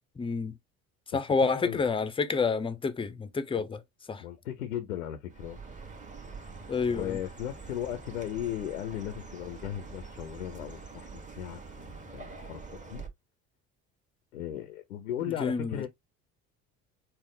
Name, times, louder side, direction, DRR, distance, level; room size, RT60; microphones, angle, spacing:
voice 1, 0.2-0.6 1.1-3.8 4.1-4.2 6.7-7.2 15.2-15.8, left 4 dB, 15° left, 0.5 m, -29 dB
voice 2, 1.4-1.8 4.2-5.6 6.9-13.0 14.3-15.9, left 11 dB, 85° left, 0.6 m, -37 dB
Chirp tweet, 5.3-13.1, right 4 dB, 15° right, 1.2 m, -45 dB
4.4 x 2.0 x 3.7 m
figure-of-eight pair, 60°, 42 cm